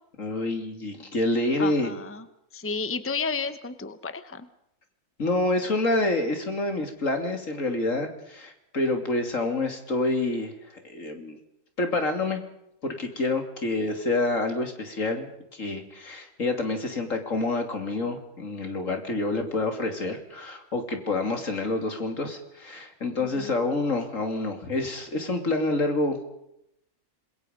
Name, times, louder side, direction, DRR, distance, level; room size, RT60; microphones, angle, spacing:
voice 1, 0.2-1.9 5.2-10.5 10.8-11.4 11.8-12.4 12.8-26.2, left 2 dB, 75° left, 5 dB, 3.3 m, -27 dB
voice 2, 1.6-2.3 2.5-4.5 23.4-23.5, left 4 dB, 10° left, 11 dB, 1.0 m, -32 dB
26.5 x 22.0 x 5.3 m, 0.79 s
omnidirectional pair, 1.4 m